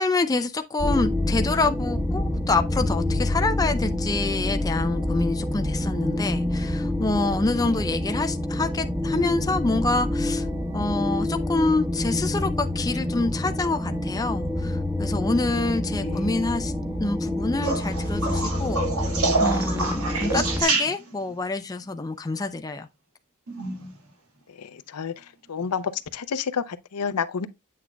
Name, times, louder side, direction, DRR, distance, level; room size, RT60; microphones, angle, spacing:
voice 1, 0.0-10.5 10.7-22.9, left 3 dB, 15° left, 0.4 m, -27 dB
sound 1, 0.8-20.6, left 1 dB, 10° right, 1.3 m, -27 dB
voice 2, 16.0-16.3 24.6-25.1 25.5-27.5, left 6 dB, 85° left, 0.6 m, -30 dB
sound 2, 17.6-21.3 23.5-24.0 25.6-25.7, right 3 dB, 70° right, 1.9 m, -27 dB
8.6 x 6.0 x 2.2 m
head